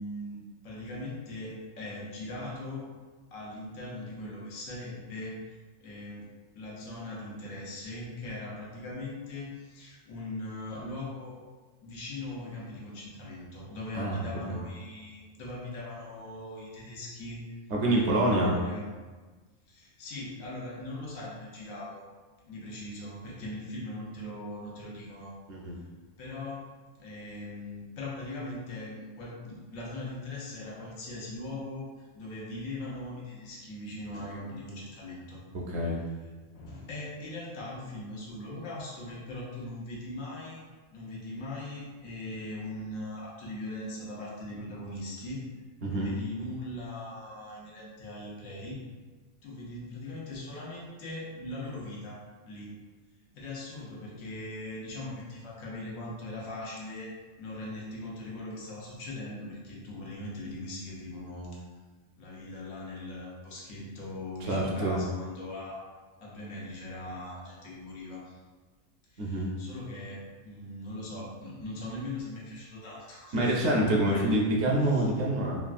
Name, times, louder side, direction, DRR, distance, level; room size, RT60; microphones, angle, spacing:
voice 1, 0.0-2.9 3.3-5.4 5.8-6.3 6.5-11.4 11.8-17.6 17.9-18.9 19.7-22.1 22.5-25.3 26.2-26.7 27.0-35.4 36.2-40.6 40.9-45.5 45.9-48.8 49.4-52.8 53.3-61.6 62.1-65.8 66.2-68.4 69.1-74.3 74.8-75.1, left 1 dB, 85° left, -4 dB, 1.1 m, -40 dB
voice 2, 17.7-18.6 25.5-25.7 35.7-36.0 45.8-46.1 64.5-65.0 69.2-69.5 73.3-75.6, right 1 dB, 65° right, -2 dB, 0.8 m, -26 dB
3.4 x 2.2 x 2.4 m, 1.3 s
omnidirectional pair, 1.4 m